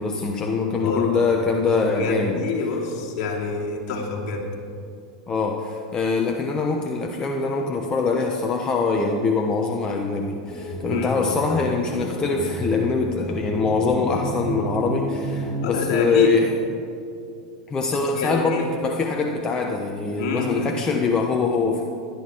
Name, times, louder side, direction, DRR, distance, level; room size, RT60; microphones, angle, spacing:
voice 1, 0.0-2.4 5.3-16.5 17.7-21.8, left 4 dB, 25° left, 2 dB, 1.1 m, -23 dB
voice 2, 0.6-1.1 1.9-4.5 10.8-11.2 15.6-16.3 18.1-18.6 20.2-20.6, left 4 dB, 55° left, -1 dB, 2.9 m, -27 dB
sound 1, 10.5-15.7, right 1 dB, ahead, 2.2 m, -31 dB
17.5 x 11.0 x 4.7 m, 2.5 s
hypercardioid pair, 95°, 3 cm